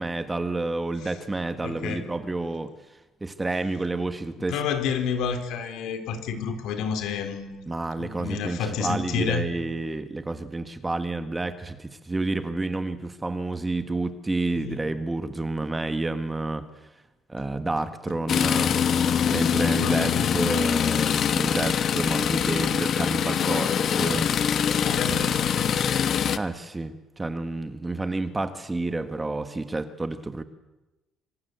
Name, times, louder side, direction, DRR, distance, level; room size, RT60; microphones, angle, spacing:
voice 1, 0.0-2.7 3.2-4.6 7.7-16.7 17.3-18.8 19.3-24.3 25.1-25.3 26.4-30.4, right 2 dB, 10° right, 10 dB, 1.5 m, -29 dB
voice 2, 1.6-2.0 4.5-7.7 8.0-9.5 14.6-14.8 19.8-20.5 24.8-25.9, left 6 dB, 75° left, 8 dB, 4.2 m, -30 dB
sound 1, 18.3-26.4, left 8 dB, 40° left, 1.2 m, -23 dB
26.5 x 25.5 x 8.1 m, 1.0 s
cardioid pair, 160°, 0 cm